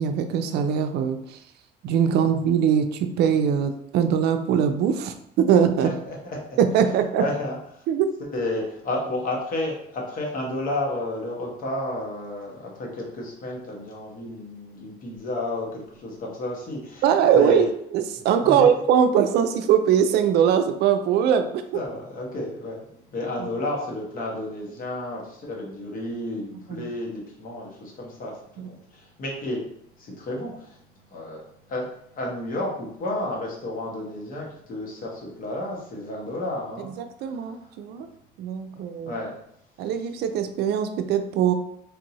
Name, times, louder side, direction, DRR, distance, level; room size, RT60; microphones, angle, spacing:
voice 1, 0.0-1.4 1.8-5.9 6.6-7.2 7.9-8.1 17.0-17.7 17.9-21.5 26.7-26.9 28.6-28.7 37.2-38.1 38.4-39.1 39.8-41.5, right 8 dB, 75° right, 8 dB, 0.4 m, -21 dB
voice 2, 5.8-6.6 7.2-7.8 8.2-17.7 18.4-18.7 21.7-29.7 29.9-36.9 37.2-37.8 38.7-39.4, left 1 dB, 55° left, -2 dB, 1.2 m, -32 dB
3.4 x 2.7 x 2.9 m, 0.74 s
cardioid pair, 110°, 17 cm